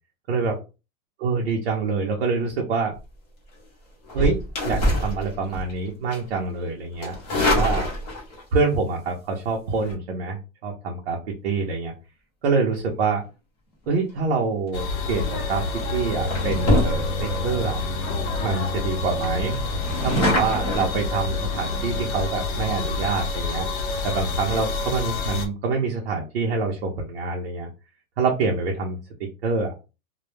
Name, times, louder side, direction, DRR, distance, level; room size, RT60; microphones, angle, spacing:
voice 1, 0.3-0.6 1.2-2.9 4.1-7.9 8.5-11.2 11.4-11.9 12.4-13.2 13.9-15.6 15.9-17.8 18.4-19.6 20.0-23.7 24.0-27.7 28.2-29.9, right 4 dB, 45° right, 0 dB, 0.5 m, -26 dB
sound 1, 4.1-5.7 6.1-6.4 7.0-8.4 9.7-9.9 15.0-15.2 15.7-15.9 16.3-17.4 17.9-18.0 18.2-18.3 18.7-18.8 19.1-20.9, left 1 dB, 30° left, 0.7 m, -24 dB
sound 2, 14.7-25.5, left 3 dB, 85° left, 0.8 m, -28 dB
sound 3, 16.1-22.7, equal, ahead, 1.1 m, -35 dB
2.1 x 2.0 x 3.0 m, 0.30 s
supercardioid pair, 175°, 42 cm